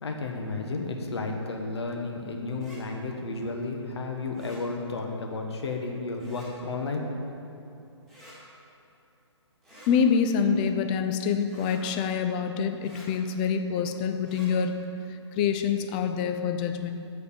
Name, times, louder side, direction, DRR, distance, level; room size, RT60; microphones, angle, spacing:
voice 1, 0.0-7.0, left 3 dB, 60° left, 2 dB, 1.2 m, -32 dB
sound 1, 2.5-2.8 4.3-4.6 6.2-6.5 8.1-8.4 9.6-9.9 11.5-11.8 12.8-13.1 14.2-14.5, equal, ahead, 2.2 m, -50 dB
voice 2, 9.9-14.9 15.3-16.9, left 6 dB, 20° left, 8 dB, 0.3 m, -26 dB
7.0 x 6.6 x 7.3 m, 2.7 s
figure-of-eight pair, 140°, 15 cm